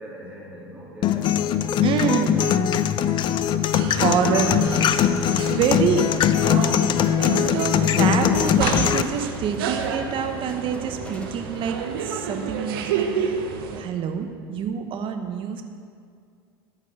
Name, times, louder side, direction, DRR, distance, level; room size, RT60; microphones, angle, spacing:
voice 1, 0.0-2.5, right 1 dB, 10° right, -5 dB, 2.3 m, -41 dB
sound 1, 1.0-9.0, left 9 dB, 40° left, 0.5 m, -21 dB
voice 2, 1.8-2.7 3.1-3.2 3.9-6.0 6.4-13.4 13.7-15.6, right 7 dB, 45° right, 5 dB, 1.1 m, -27 dB
sound 2, 3.7-13.8, right 6 dB, 70° right, 1.0 m, -30 dB
sound 3, 6.9-12.4, equal, 10° left, 1.1 m, -43 dB
13.0 x 4.8 x 7.1 m, 2.2 s
hypercardioid pair, 85°, 12 cm